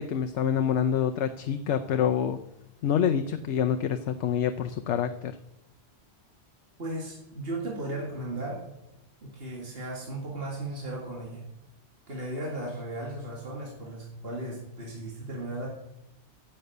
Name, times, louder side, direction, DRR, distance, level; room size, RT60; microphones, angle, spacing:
voice 1, 0.0-2.4 2.8-5.4, left 8 dB, 85° left, 8 dB, 1.0 m, -27 dB
voice 2, 6.8-8.6 9.2-11.5 12.1-15.7, right 1 dB, 60° right, -3 dB, 2.5 m, -36 dB
10.5 x 7.7 x 8.0 m, 0.86 s
omnidirectional pair, 1.2 m